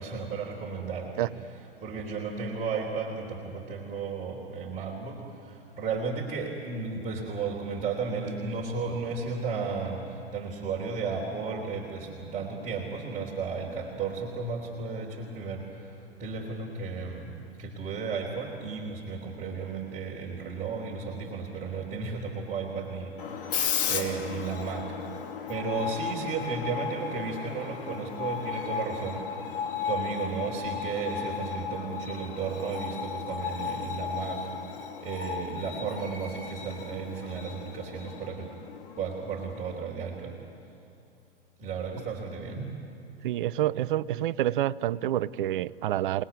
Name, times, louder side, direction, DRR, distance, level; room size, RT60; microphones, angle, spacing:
voice 1, 0.0-25.1 25.5-38.5 39.0-40.4 41.6-42.7, right 5 dB, 25° right, -3 dB, 3.4 m, -34 dB
Screech, 23.2-39.8, left 7 dB, 60° left, 2.4 m, -35 dB
voice 2, 43.2-46.2, right 13 dB, 55° right, 19 dB, 0.6 m, -28 dB
29.0 x 19.5 x 9.6 m, 2.8 s
figure-of-eight pair, 100°, 31 cm